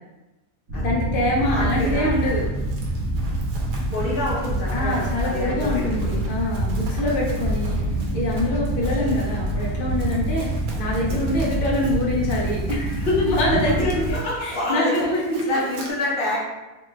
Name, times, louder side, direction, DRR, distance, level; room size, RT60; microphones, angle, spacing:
voice 1, 0.7-2.4 4.7-7.8 8.1-10.5 10.7-15.6, left 1 dB, 90° left, -4 dB, 0.4 m, -24 dB
sound 1, 0.7-14.2, right 1 dB, 55° right, 0.8 m, -26 dB
Run, 1.3-15.9, right 2 dB, 80° right, 1.2 m, -44 dB
voice 2, 1.4-2.1 3.9-6.1 11.2-11.3 13.6-15.1 15.5-16.5, left 2 dB, 50° left, -5 dB, 0.7 m, -28 dB
Bowed string instrument, 9.8-12.3, right 5 dB, 70° left, 1.1 m, -38 dB
3.1 x 2.1 x 3.2 m, 1.1 s
omnidirectional pair, 1.7 m